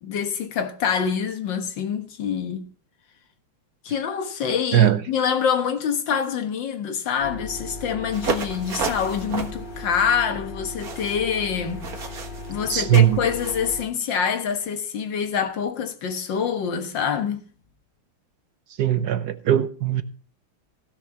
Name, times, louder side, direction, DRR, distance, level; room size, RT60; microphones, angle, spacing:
voice 1, 0.0-2.7 3.8-12.1 12.5-17.5, left 7 dB, 65° left, 1.9 m, -26 dB
sound 1, 7.2-13.8, left 2 dB, 45° left, 0.7 m, -37 dB
sound 2, 8.1-13.6, right 4 dB, 50° right, 1.8 m, -32 dB
voice 2, 12.7-13.2 18.8-20.0, right 11 dB, 65° right, 1.1 m, -19 dB
16.5 x 6.7 x 5.8 m
omnidirectional pair, 2.3 m